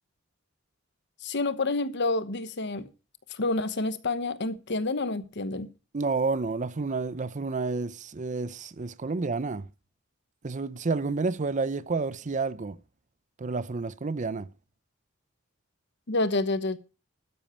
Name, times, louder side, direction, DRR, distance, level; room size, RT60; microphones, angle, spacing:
voice 1, 1.2-2.8 3.3-5.7 16.1-16.8, left 2 dB, 60° left, 1.1 m, -28 dB
voice 2, 5.9-9.6 10.4-12.8 13.4-14.5, right 4 dB, 40° right, 0.6 m, -30 dB
12.5 x 10.0 x 4.4 m
head